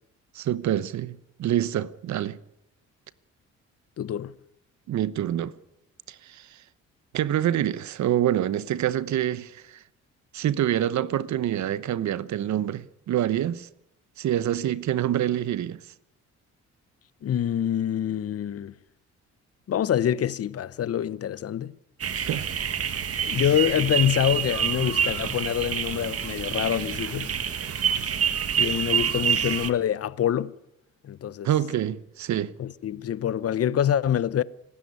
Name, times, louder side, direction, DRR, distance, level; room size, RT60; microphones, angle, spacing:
voice 1, 0.3-2.4 4.9-5.5 6.1-6.5 7.1-9.8 10.3-13.7 14.2-15.8 22.2-22.5 31.4-32.5, right 11 dB, 70° right, 1.0 m, -26 dB
voice 2, 4.0-4.3 17.2-18.7 19.7-21.7 23.2-27.4 28.6-30.5 31.0-31.5 32.6-34.4, left 10 dB, 50° left, 1.0 m, -26 dB
sound 1, 22.0-29.7, right 8 dB, 50° right, 1.8 m, -27 dB
27.0 x 13.0 x 9.7 m
cardioid pair, 90°, 30 cm